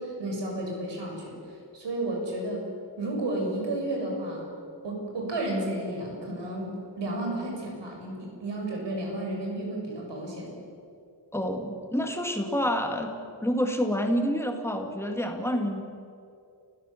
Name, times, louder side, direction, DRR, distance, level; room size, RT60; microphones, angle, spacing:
voice 1, 0.0-2.6 3.0-4.4 4.8-10.5, right 1 dB, 80° right, 0 dB, 6.8 m, -32 dB
voice 2, 11.3-13.1 13.4-15.8, equal, 5° left, 3 dB, 2.0 m, -28 dB
29.5 x 16.5 x 7.2 m, 2.5 s
wide cardioid pair, 175°, 42 cm